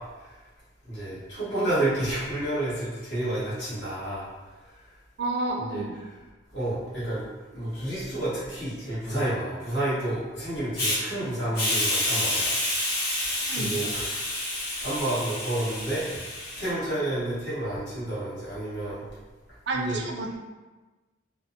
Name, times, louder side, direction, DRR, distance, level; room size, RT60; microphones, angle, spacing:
voice 1, 0.9-4.3 5.6-5.8 6.5-7.2 7.5-12.5 13.6-14.1 14.8-16.0 16.6-19.0 19.7-20.0, right 1 dB, 70° left, -12 dB, 1.3 m, -30 dB
voice 2, 5.2-5.9 13.4-13.8 19.7-20.4, right 2 dB, 60° right, 1 dB, 0.4 m, -30 dB
Hiss, 10.8-11.0 11.5-16.7, left 1 dB, 55° left, 0.9 m, -28 dB
3.3 x 2.0 x 2.6 m, 1.3 s
head